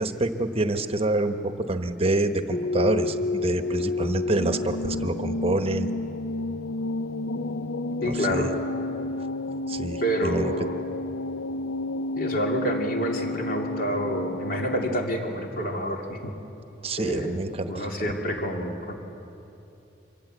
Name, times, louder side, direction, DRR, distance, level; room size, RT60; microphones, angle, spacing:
voice 1, 0.0-5.9 8.1-8.5 9.7-10.5 16.8-17.9, right 2 dB, 35° right, 8 dB, 1.0 m, -27 dB
sound 1, 2.5-15.0, left 2 dB, 75° left, 0.6 m, -30 dB
voice 2, 8.0-8.4 10.0-10.8 12.2-16.3 17.0-17.4 17.7-18.9, equal, 55° left, 1 dB, 2.9 m, -28 dB
24.5 x 17.5 x 8.0 m, 2.8 s
head